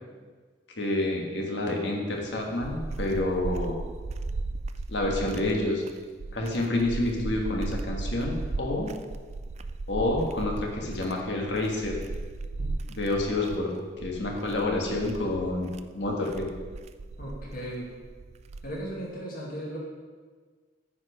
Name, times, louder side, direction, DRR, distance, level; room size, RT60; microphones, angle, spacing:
voice 1, 0.8-3.8 4.9-5.8 6.3-8.9 9.9-12.0 12.9-16.5, left 2 dB, 70° left, 0 dB, 1.5 m, -28 dB
sound 1, 2.1-19.0, right 3 dB, 35° right, 0.3 m, -36 dB
voice 2, 17.2-17.9 18.6-19.8, right 1 dB, 50° left, -4 dB, 2.3 m, -36 dB
9.4 x 5.0 x 5.0 m, 1.5 s
head